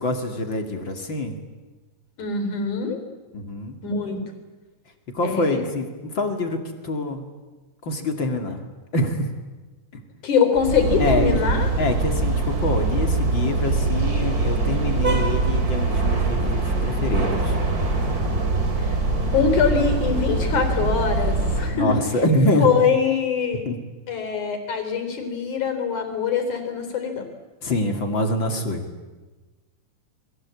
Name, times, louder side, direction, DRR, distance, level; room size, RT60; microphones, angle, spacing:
voice 1, 0.0-1.4 3.3-3.8 5.1-7.3 7.8-8.6 8.9-9.3 9.9-10.0 11.0-11.3 11.8-17.6 21.7-22.7 23.6-23.8 27.6-28.9, left 1 dB, 35° left, 5 dB, 2.8 m, -25 dB
voice 2, 2.2-3.0 3.8-4.2 5.2-5.7 10.2-11.7 18.8-19.0 19.3-22.0 22.6-23.6 24.1-27.3, left 6 dB, 60° left, 7 dB, 5.2 m, -23 dB
sound 1, 10.6-21.8, right 3 dB, 30° right, 2.9 m, -23 dB
28.5 x 22.5 x 8.5 m, 1.2 s
omnidirectional pair, 3.9 m